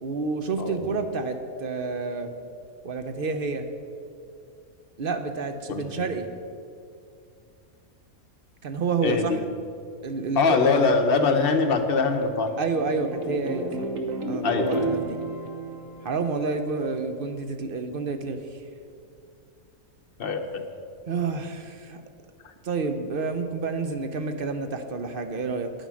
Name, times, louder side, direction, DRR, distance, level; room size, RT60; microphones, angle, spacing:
voice 1, 0.0-2.3 2.8-3.7 5.0-6.3 8.6-9.4 10.0-10.9 12.6-13.9 14.2-15.2 16.0-18.4 21.1-22.0 22.6-25.7, right 4 dB, 50° right, 8 dB, 0.8 m, -29 dB
voice 2, 5.7-6.0 9.0-9.4 10.3-12.5 14.4-15.0 20.2-20.6, left 4 dB, 45° left, 6 dB, 0.9 m, -23 dB
sound 1, 11.5-16.9, right 3 dB, 70° right, 1.5 m, -33 dB
9.8 x 9.0 x 6.2 m, 2.4 s
omnidirectional pair, 1.5 m